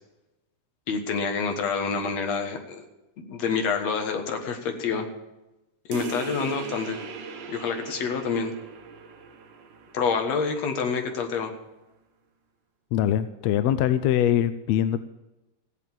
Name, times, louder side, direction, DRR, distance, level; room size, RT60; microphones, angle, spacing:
voice 1, 0.9-2.8 3.2-5.1 5.9-7.0 7.5-8.5 9.9-11.5, left 5 dB, 65° left, 5 dB, 2.6 m, -27 dB
sound 1, 5.9-11.0, right 5 dB, 55° right, 1.4 m, -39 dB
voice 2, 12.9-15.0, left 11 dB, 80° left, 12 dB, 1.6 m, -23 dB
15.0 x 8.5 x 7.3 m, 0.99 s
omnidirectional pair, 3.4 m